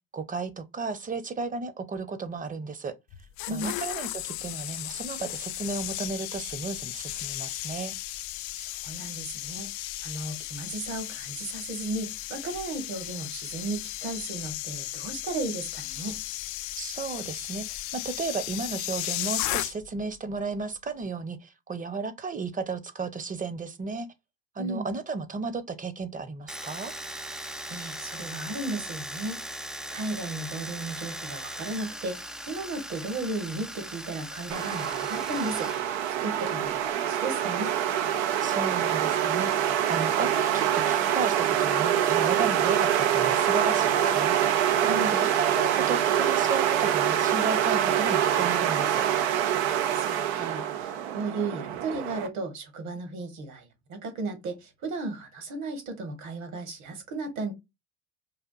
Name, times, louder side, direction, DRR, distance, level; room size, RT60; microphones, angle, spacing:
voice 1, 0.1-2.9 3.5-7.9 16.8-24.1 24.5-26.9 38.4-44.6 44.9-49.0, right 4 dB, 25° right, 0.8 m, -34 dB
sound 1, 3.1-20.1 20.3-20.6, left 16 dB, 60° left, 0.5 m, -35 dB
voice 2, 8.6-9.7 10.0-16.2 24.6-24.9 27.7-29.4 29.9-32.2 32.5-35.7 36.1-37.7 44.9-45.1 49.9-57.5, right 2 dB, 60° right, 1.8 m, -35 dB
Domestic sounds home sounds, 26.5-35.8 36.1-36.9, equal, ahead, 0.4 m, -39 dB
sound 2, 34.5-52.3, right 10 dB, 80° right, 0.7 m, -25 dB
4.9 x 2.5 x 2.5 m
hypercardioid pair, 70°, 33 cm